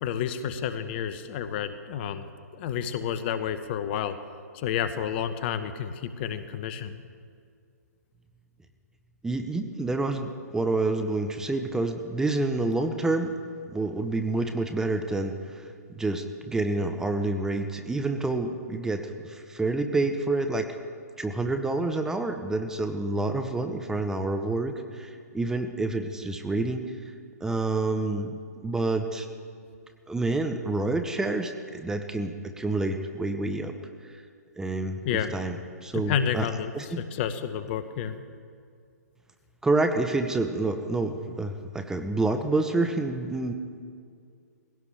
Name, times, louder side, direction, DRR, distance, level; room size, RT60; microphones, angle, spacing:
voice 1, 0.0-2.3 2.5-4.2 4.5-7.0 35.0-35.3 35.9-38.2, left 8 dB, 40° left, 11 dB, 0.9 m, -30 dB
voice 2, 9.2-13.4 13.7-15.7 16.0-20.8 21.2-26.9 27.4-28.3 28.6-29.3 30.1-33.7 34.0-34.2 34.6-35.6 35.8-36.5 36.7-37.0 39.6-43.5, right 2 dB, 5° right, 6 dB, 0.8 m, -28 dB
20.5 x 16.5 x 3.4 m, 2.2 s
figure-of-eight pair, 125°, 9 cm